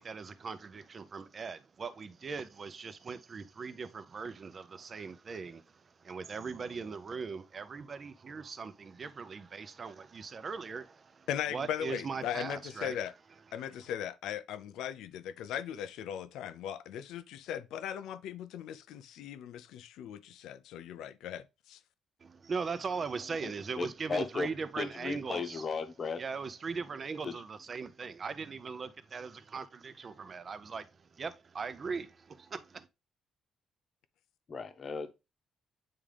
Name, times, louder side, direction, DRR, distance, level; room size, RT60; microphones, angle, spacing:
voice 1, 0.0-13.0 13.5-13.9 22.2-25.7 26.2-32.9, right 5 dB, 40° right, 0.6 m, -40 dB
voice 2, 11.3-13.1 13.5-21.8, left 10 dB, 90° left, 0.5 m, -38 dB
voice 3, 23.8-24.5 24.8-26.2 27.2-27.4 34.5-35.1, left 4 dB, 40° left, 0.9 m, -36 dB
8.7 x 3.7 x 3.3 m
cardioid pair, 110°, 0 cm